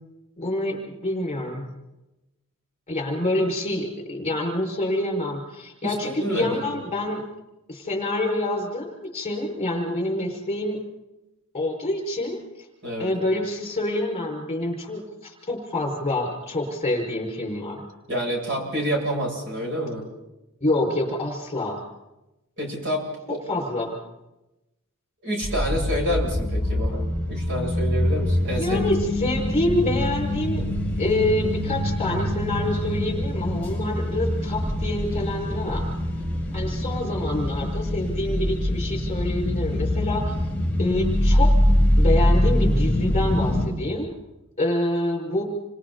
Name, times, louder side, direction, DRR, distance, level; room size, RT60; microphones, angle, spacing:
voice 1, 0.4-1.8 2.9-7.2 7.7-10.8 11.5-12.4 13.0-17.9 20.6-21.8 23.5-23.9 28.6-30.6 31.0-35.9 36.5-40.3 40.8-41.5 42.0-44.1 44.6-45.4, left 1 dB, 30° left, 1 dB, 5.8 m, -27 dB
voice 2, 5.8-6.8 12.8-13.1 18.1-20.1 22.6-23.4 25.2-28.9, equal, 55° right, -1 dB, 7.9 m, -28 dB
sound 1, 25.4-43.7, left 1 dB, 5° left, 7.5 m, -24 dB
28.5 x 26.5 x 4.2 m, 0.98 s
head